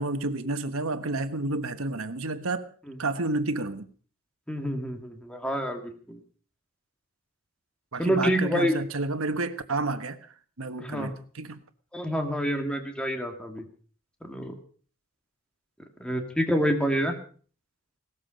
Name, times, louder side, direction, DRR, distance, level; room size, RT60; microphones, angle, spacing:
voice 1, 0.0-2.7 3.0-3.9 7.9-10.3 10.6-11.6, right 2 dB, 85° right, 9 dB, 1.3 m, -30 dB
voice 2, 4.5-6.2 8.0-8.7 10.8-11.1 11.9-13.7 14.2-14.5 16.0-17.1, equal, 5° left, 4 dB, 2.0 m, -27 dB
17.5 x 13.5 x 5.2 m, 0.43 s
head